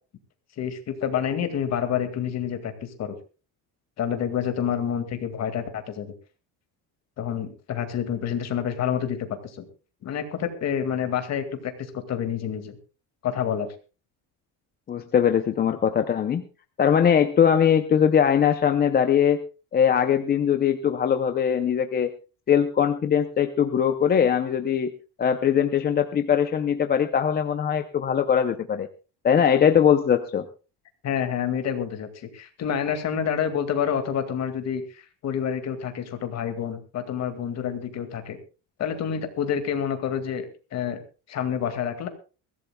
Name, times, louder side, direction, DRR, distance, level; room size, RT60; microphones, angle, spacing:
voice 1, 0.6-3.2 4.0-6.1 7.2-9.7 10.0-12.8 13.2-13.7 31.0-38.4 38.8-40.5 40.7-41.0 41.3-42.1, left 8 dB, 40° left, 8 dB, 2.1 m, -28 dB
voice 2, 14.9-16.4 16.8-19.4 19.7-22.1 22.5-24.9 25.2-28.9 29.2-30.4, left 8 dB, 25° left, 8 dB, 0.6 m, -21 dB
22.5 x 15.5 x 2.3 m, 0.34 s
cardioid pair, 175°, 42 cm